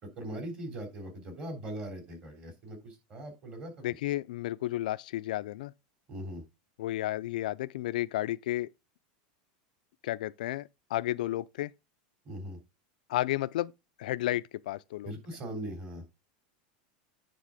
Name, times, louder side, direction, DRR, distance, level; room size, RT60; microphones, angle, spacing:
voice 1, 0.0-3.8 6.1-6.4 12.2-12.6 15.0-16.0, right 1 dB, 30° right, 3.3 m, -40 dB
voice 2, 3.8-5.7 6.8-8.7 10.0-11.7 13.1-13.7 14.0-15.1, left 15 dB, 85° left, 0.5 m, -32 dB
9.7 x 3.5 x 5.0 m
supercardioid pair, 155°, 4 cm